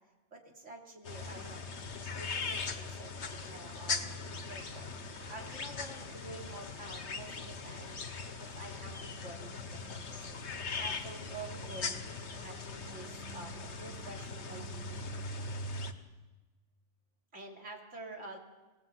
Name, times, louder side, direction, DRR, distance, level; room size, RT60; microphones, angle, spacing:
voice 1, 0.3-1.6 2.1-3.1 3.4-8.0 8.4-15.1 17.3-18.4, right 2 dB, 85° right, 0 dB, 3.3 m, -49 dB
sound 1, 1.0-15.9, left 3 dB, 70° left, 1.7 m, -40 dB
25.5 x 17.5 x 8.0 m, 1.2 s
omnidirectional pair, 1.2 m